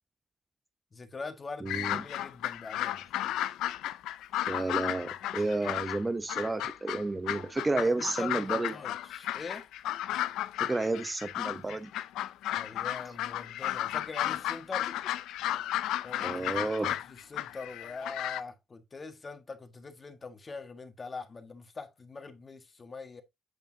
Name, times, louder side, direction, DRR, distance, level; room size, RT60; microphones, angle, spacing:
voice 1, 0.9-3.1 7.7-9.7 10.1-10.2 12.5-15.0 16.0-23.2, left 4 dB, 35° left, 1.5 m, -43 dB
voice 2, 1.6-2.0 4.5-8.7 10.6-11.9 16.2-16.9, right 2 dB, 20° right, 0.7 m, -31 dB
sound 1, 1.7-6.0 6.3-18.4, left 13 dB, 90° left, 0.5 m, -34 dB
8.2 x 6.9 x 2.7 m
cardioid pair, 90°, 0 cm